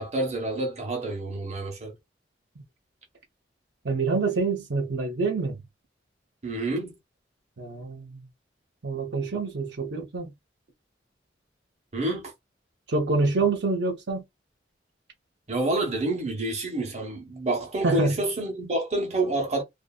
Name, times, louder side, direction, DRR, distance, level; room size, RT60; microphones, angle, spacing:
voice 1, 0.0-1.9 6.4-6.9 11.9-12.3 15.5-19.6, right 2 dB, 35° right, 0.9 m, -28 dB
voice 2, 3.8-5.6 7.6-8.2 8.8-10.3 12.9-14.2 17.8-18.1, right 3 dB, 65° right, 0.7 m, -26 dB
2.6 x 2.5 x 2.3 m
head